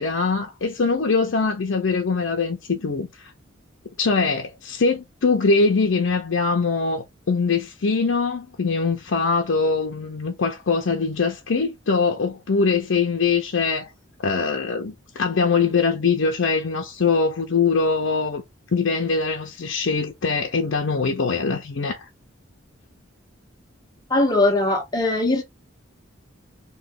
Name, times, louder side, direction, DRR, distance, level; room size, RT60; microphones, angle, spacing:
voice 1, 0.0-3.3 4.0-13.9 14.2-18.4 18.7-22.1, left 4 dB, 65° left, 0.6 m, -22 dB
voice 2, 24.1-25.4, left 2 dB, 20° left, 0.8 m, -20 dB
3.1 x 2.2 x 3.6 m
head